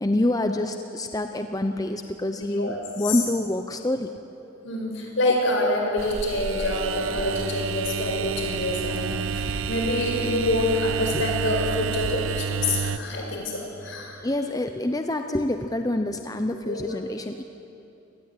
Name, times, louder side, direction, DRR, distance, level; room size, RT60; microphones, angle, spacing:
voice 1, 0.0-4.1 11.1-11.2 14.2-17.4, left 1 dB, 20° left, 6 dB, 0.7 m, -27 dB
voice 2, 2.4-3.2 4.6-14.2 16.6-17.0, left 1 dB, 65° left, 1 dB, 6.2 m, -27 dB
sound 1, 6.0-13.0, right 6 dB, 80° right, 0.9 m, -29 dB
26.0 x 19.5 x 9.9 m, 2.9 s
head